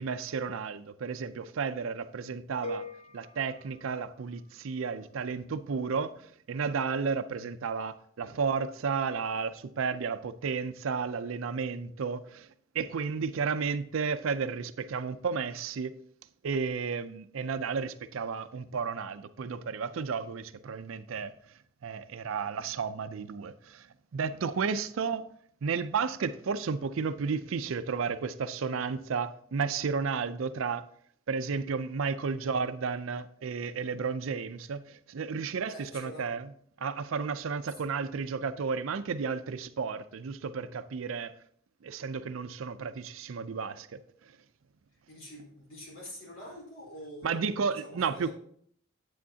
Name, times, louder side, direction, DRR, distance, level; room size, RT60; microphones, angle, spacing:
voice 1, 0.0-2.9 3.1-12.5 12.7-15.9 16.4-21.3 21.8-23.9 24.1-25.3 25.6-30.8 31.3-36.5 36.8-41.3 41.8-44.3 47.2-48.3, right 5 dB, 70° right, 0.5 m, -33 dB
sound 1, 2.6-4.7, left 1 dB, 30° left, 0.9 m, -43 dB
voice 2, 35.6-36.3 37.7-37.8 45.1-47.5 47.8-48.3, equal, 70° left, 4.0 m, -46 dB
8.5 x 8.5 x 2.8 m
head